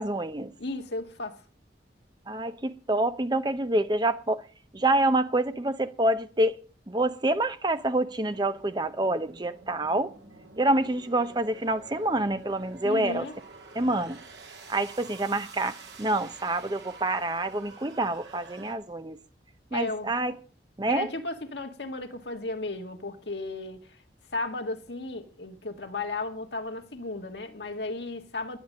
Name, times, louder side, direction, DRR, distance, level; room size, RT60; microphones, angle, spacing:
voice 1, 0.0-0.5 2.3-4.4 4.7-6.6 6.9-10.1 10.6-13.3 13.7-14.2 14.7-19.2 19.7-20.3 20.8-21.1, right 1 dB, 25° right, 0.7 m, -27 dB
voice 2, 0.6-1.4 12.8-13.3 19.7-20.1 20.9-24.0 24.3-28.6, left 2 dB, 75° left, 1.6 m, -34 dB
sound 1, 8.2-18.7, right 4 dB, 75° right, 2.6 m, -49 dB
11.0 x 10.0 x 6.4 m
head